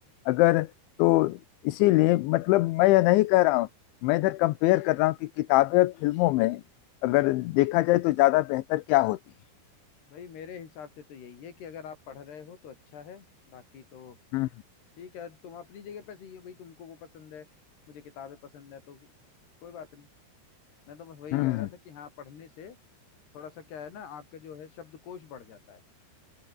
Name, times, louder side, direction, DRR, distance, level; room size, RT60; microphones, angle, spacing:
voice 1, 0.3-0.7 1.0-1.4 1.6-3.7 4.0-6.6 7.0-9.2 14.3-14.5 21.3-21.7, left 19 dB, 80° left, 3.2 m, -23 dB
voice 2, 10.1-14.2 15.0-17.5 17.9-19.1 19.6-20.1 20.9-22.8 23.3-25.8, left 7 dB, 60° left, 5.8 m, -45 dB
omnidirectional pair, 5.5 m